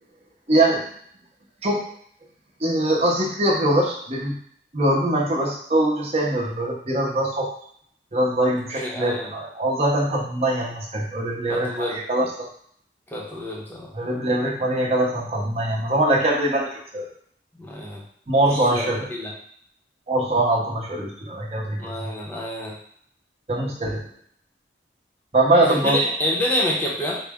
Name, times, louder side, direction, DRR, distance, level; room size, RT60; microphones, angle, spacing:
voice 1, 0.5-0.9 1.6-1.8 2.6-4.4 4.7-7.5 8.1-12.5 13.9-17.1 18.3-19.1 20.1-22.1 23.5-24.1 25.3-26.0, right 1 dB, 35° right, -3 dB, 0.8 m, -22 dB
voice 2, 8.5-9.3 11.5-12.0 13.1-13.9 17.6-18.0 18.4-19.3 21.8-22.7 25.6-27.2, equal, 10° left, -3 dB, 0.7 m, -28 dB
4.0 x 2.1 x 3.5 m, 0.64 s
head